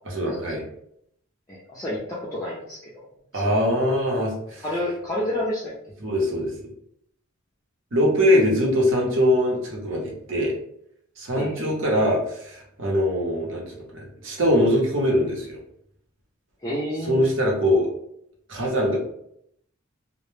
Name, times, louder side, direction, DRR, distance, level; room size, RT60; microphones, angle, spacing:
voice 1, 0.1-0.6 3.3-4.6 6.0-6.5 7.9-10.5 11.2-15.6 17.0-17.9 18.5-19.0, equal, 65° right, -2 dB, 0.7 m, -22 dB
voice 2, 1.5-3.1 3.3-3.6 4.6-5.9 11.4-11.6 16.6-17.2, left 1 dB, 15° left, -7 dB, 0.4 m, -30 dB
2.1 x 2.1 x 3.1 m, 0.73 s
head